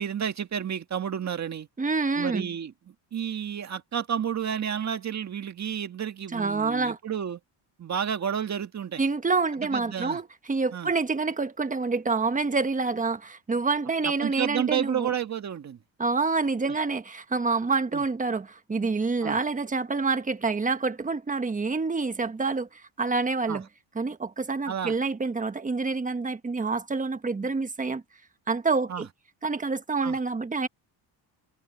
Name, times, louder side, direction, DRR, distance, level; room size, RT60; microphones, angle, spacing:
voice 1, 0.0-1.7 2.2-7.4 7.8-9.0 9.7-10.2 10.7-10.9 14.0-15.8 16.6-16.7 17.9-18.0 19.2-19.4 23.5-23.6 24.7-25.0 28.9-29.0 30.0-30.2, right 8 dB, 35° right, 1.9 m, -31 dB
voice 2, 1.8-2.5 6.3-7.0 9.0-15.1 16.0-23.7 23.9-28.0 28.5-29.1 29.4-30.7, right 4 dB, 15° right, 1.3 m, -27 dB
cardioid pair, 120°, 46 cm